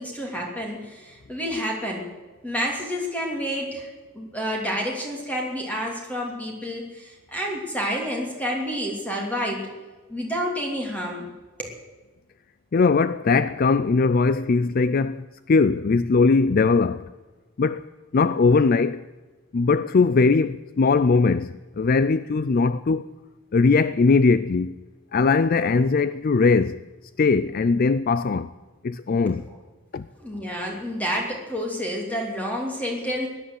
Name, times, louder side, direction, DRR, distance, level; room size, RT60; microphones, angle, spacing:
voice 1, 0.0-2.1 2.4-9.7 10.1-11.3 11.6-11.8 29.3-29.4 30.2-33.3, equal, 5° left, 2.9 m, -29 dB
voice 2, 12.7-17.1 17.6-17.9 18.1-19.0 19.5-23.1 23.5-24.8 25.1-26.8 27.2-28.5 28.8-29.4 29.9-30.1, left 4 dB, 40° left, 0.4 m, -20 dB
17.0 x 10.5 x 8.0 m
head